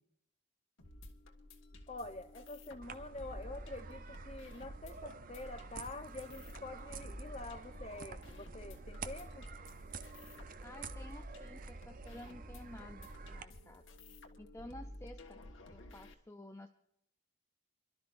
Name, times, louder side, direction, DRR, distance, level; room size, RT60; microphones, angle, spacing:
sound 1, 0.8-16.1, left 1 dB, 75° left, 1.6 m, -53 dB
voice 1, 1.9-9.5, left 2 dB, 30° left, 9 dB, 0.9 m, -47 dB
sound 2, 2.8-13.4, right 4 dB, 45° right, 0.6 m, -48 dB
voice 2, 10.6-13.8 14.4-15.4 15.7-16.7, left 1 dB, 15° left, 5 dB, 0.4 m, -52 dB
28.5 x 12.5 x 2.6 m, 0.75 s
head